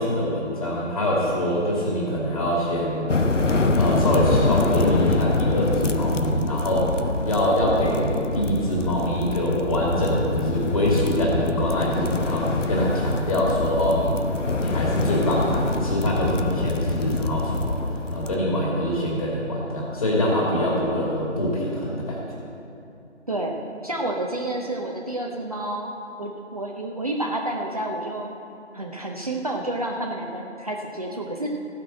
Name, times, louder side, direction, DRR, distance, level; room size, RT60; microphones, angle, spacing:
voice 1, 0.0-3.1 3.8-6.9 7.2-14.2 14.6-17.8 18.1-22.2, equal, 30° left, -4 dB, 2.7 m, -24 dB
sound 1, 3.1-18.3, left 3 dB, 85° left, 0.9 m, -25 dB
voice 2, 23.3-25.9 26.2-28.3 28.7-31.5, right 1 dB, 30° right, 0 dB, 0.7 m, -29 dB
15.0 x 6.1 x 7.6 m, 2.7 s
figure-of-eight pair, 160°, 36 cm